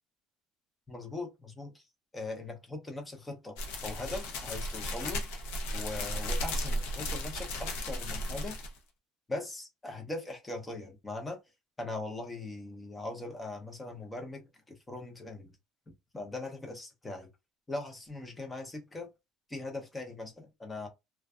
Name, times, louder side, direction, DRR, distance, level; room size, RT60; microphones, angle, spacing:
voice 1, 0.9-1.8 2.1-3.6 3.8-5.2 5.7-8.6 9.3-11.4 11.8-15.5 16.1-17.3 17.7-19.1 19.5-20.9, left 2 dB, 15° left, 0.7 m, -40 dB
sound 1, 3.6-8.8, left 1 dB, 90° left, 0.7 m, -35 dB
2.5 x 2.2 x 2.3 m
cardioid pair, 135°, 0 cm